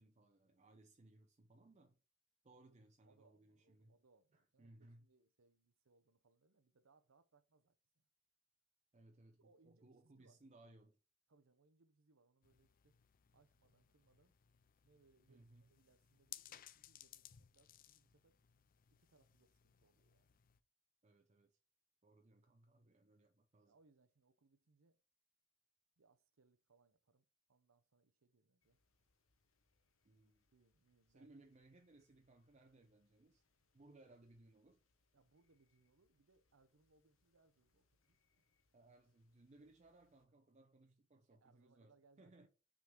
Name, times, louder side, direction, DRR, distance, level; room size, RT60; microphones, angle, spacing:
voice 1, 0.0-2.0 2.4-4.0 4.3-5.1 8.9-11.0 15.3-15.7 21.0-21.6 22.0-23.8 30.0-30.4 31.1-33.4 33.7-34.8 38.7-42.5, right 2 dB, 35° right, 0.6 m, -65 dB
voice 2, 3.0-8.1 9.4-10.4 11.3-13.0 13.3-14.4 14.8-18.4 18.9-20.4 23.6-25.0 26.0-28.8 30.5-31.4 35.1-38.5 41.3-42.5, right 3 dB, 90° right, 0.8 m, -74 dB
sound 1, 12.4-20.6, left 12 dB, 45° left, 0.4 m, -61 dB
sound 2, 28.6-40.3, left 3 dB, 80° left, 1.1 m, -85 dB
6.1 x 3.8 x 4.5 m
head